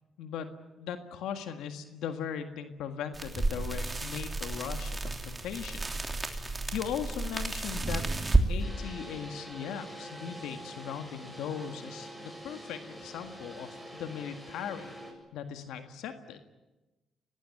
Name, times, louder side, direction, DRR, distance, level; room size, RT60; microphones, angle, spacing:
voice 1, 0.2-0.5 0.8-8.0 8.5-14.9 15.3-16.4, left 8 dB, 90° left, 7 dB, 1.7 m, -39 dB
sound 1, 3.1-8.5, right 2 dB, 20° right, 3.1 m, -31 dB
sound 2, 8.6-15.1, right 1 dB, ahead, 7.8 m, -45 dB
23.5 x 19.0 x 9.7 m, 1.1 s
cardioid pair, 90°, 0 cm